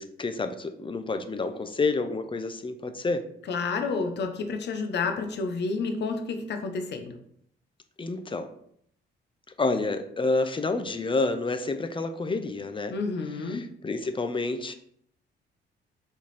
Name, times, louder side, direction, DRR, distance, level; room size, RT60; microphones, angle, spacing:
voice 1, 0.0-3.2 8.0-8.5 9.6-12.9 13.5-14.7, left 3 dB, 25° left, 8 dB, 0.8 m, -29 dB
voice 2, 3.4-7.2 12.9-13.6, left 4 dB, 60° left, 5 dB, 1.0 m, -30 dB
6.1 x 4.0 x 4.2 m, 0.66 s
cardioid pair, 90°, 20 cm